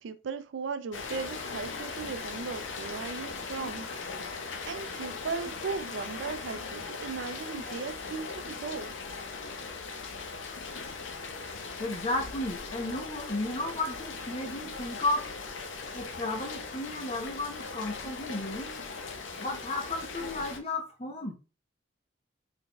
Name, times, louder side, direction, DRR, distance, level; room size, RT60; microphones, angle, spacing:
voice 1, 0.0-3.9 4.7-8.9, right 5 dB, 70° right, 0.4 m, -37 dB
Rain, 0.9-20.6, left 4 dB, 75° left, 0.7 m, -39 dB
voice 2, 11.8-15.2 15.9-18.8 19.4-21.4, left 2 dB, 30° left, 0.8 m, -34 dB
3.8 x 3.5 x 2.3 m
head